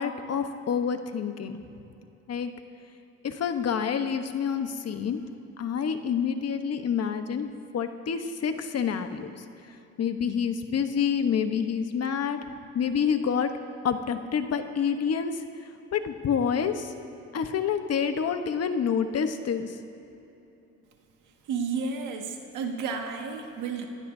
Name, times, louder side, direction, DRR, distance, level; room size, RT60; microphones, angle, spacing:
voice 1, 0.0-1.6 2.3-2.5 3.2-5.2 5.6-9.4 10.0-12.4 12.7-13.5 13.8-15.4 15.9-16.9 17.3-19.8, left 7 dB, 55° left, 8 dB, 1.1 m, -28 dB
voice 2, 21.5-23.9, right 5 dB, 90° right, 2 dB, 1.9 m, -32 dB
26.0 x 16.0 x 2.8 m, 3.0 s
cardioid pair, 90°, 30 cm